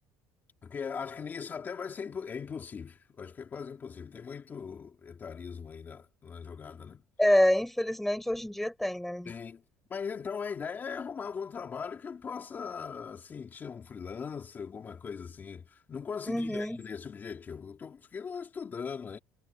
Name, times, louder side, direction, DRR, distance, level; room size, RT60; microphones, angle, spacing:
voice 1, 0.6-7.0 9.2-9.6 9.9-19.2, left 6 dB, 25° left, 3.4 m, -39 dB
voice 2, 7.2-9.3 16.3-16.8, left 1 dB, 5° left, 4.0 m, -27 dB
cardioid pair, 140°, 7 cm